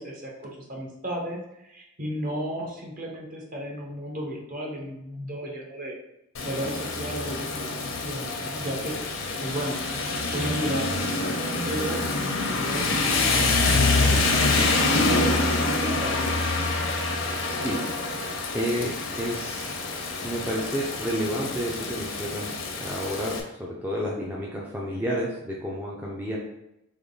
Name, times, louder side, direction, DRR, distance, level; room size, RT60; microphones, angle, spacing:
voice 1, 0.0-5.9 6.4-9.0 9.4-9.8 10.3-16.3, equal, 40° right, -1 dB, 1.0 m, -34 dB
Rain, 6.3-23.4, left 3 dB, 70° left, 0.8 m, -26 dB
voice 2, 17.4-18.3 18.5-19.7 20.2-22.5 22.8-26.4, equal, 10° right, -4 dB, 0.5 m, -31 dB
3.6 x 3.1 x 3.9 m, 0.86 s
head